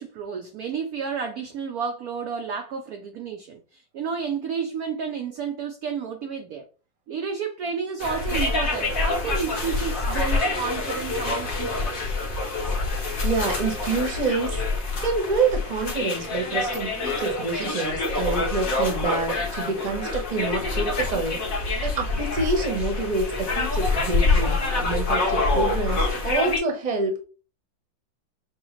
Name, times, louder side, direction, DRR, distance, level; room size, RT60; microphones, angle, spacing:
voice 1, 0.0-6.6 7.1-12.1, right 6 dB, 70° right, 0.9 m, -31 dB
sound 1, 8.0-26.6, left 3 dB, 45° left, 1.8 m, -26 dB
voice 2, 13.0-14.6 15.0-21.4 21.8-27.3, right 3 dB, 30° right, 0.9 m, -27 dB
7.0 x 2.4 x 3.1 m
omnidirectional pair, 2.1 m